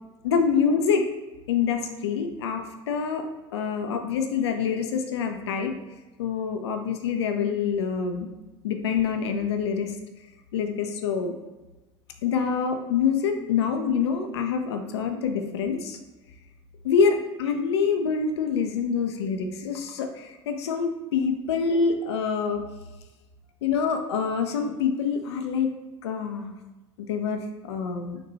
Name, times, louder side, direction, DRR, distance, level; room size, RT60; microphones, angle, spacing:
voice 1, 0.2-1.0 1.5-3.3 3.5-5.7 6.2-8.3 8.6-10.0 10.5-11.3 12.2-16.0 16.8-22.6 23.6-25.7 26.0-26.5 27.0-28.2, left 6 dB, 85° left, 5 dB, 0.4 m, -26 dB
3.9 x 2.2 x 2.8 m, 1.1 s
hypercardioid pair, 75°, 14 cm